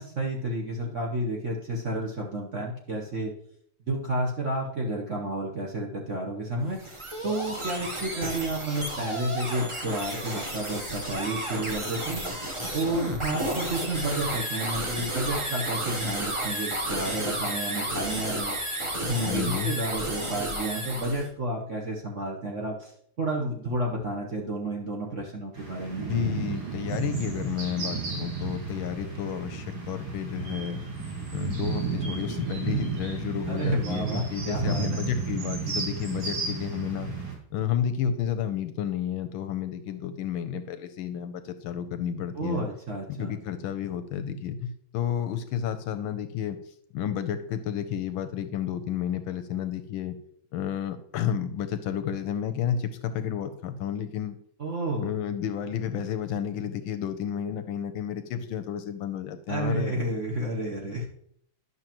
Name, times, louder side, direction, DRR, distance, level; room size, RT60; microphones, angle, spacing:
voice 1, 0.0-3.3 3.9-6.8 7.2-12.2 12.7-18.6 19.0-22.9 23.2-26.0 33.5-35.0 42.4-43.4 54.6-55.1 59.5-61.1, right 1 dB, 50° right, -1 dB, 1.0 m, -31 dB
sound 1, 6.6-21.3, right 1 dB, 30° right, 0.5 m, -32 dB
voice 2, 19.2-19.7 26.1-30.8 31.3-37.1 37.5-42.6 43.1-46.6 46.9-50.2 50.5-54.4 55.0-59.9, left 9 dB, 75° left, 9 dB, 1.3 m, -31 dB
sound 2, 25.5-37.3, right 5 dB, 80° right, 3.1 m, -33 dB
11.0 x 6.4 x 3.0 m, 0.68 s
omnidirectional pair, 2.4 m